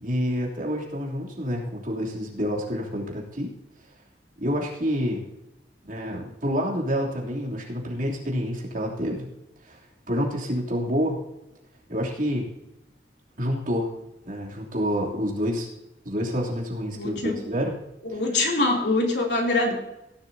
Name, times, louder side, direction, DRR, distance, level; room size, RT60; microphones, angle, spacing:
voice 1, 0.0-3.5 4.4-5.2 5.8-9.3 9.6-9.8 10.1-11.2 11.9-12.5 13.4-13.9 14.2-15.7 16.0-17.8 18.1-18.2, equal, 50° right, -2 dB, 3.1 m, -28 dB
voice 2, 17.0-17.4 18.1-19.7, left 2 dB, 75° left, 0 dB, 3.0 m, -24 dB
17.5 x 11.5 x 2.8 m, 0.88 s
head